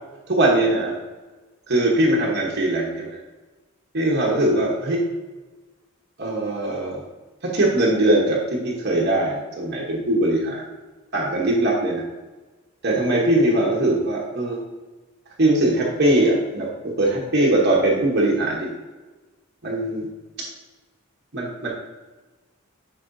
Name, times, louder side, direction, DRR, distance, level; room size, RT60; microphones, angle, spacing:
voice 1, 0.3-0.9 1.7-3.2 3.9-5.0 6.2-7.0 7.4-10.6 11.1-12.0 12.8-14.6 15.4-18.7 19.6-20.1 21.3-21.7, right 1 dB, 50° right, -3 dB, 1.0 m, -21 dB
8.4 x 4.9 x 2.6 m, 1.2 s
head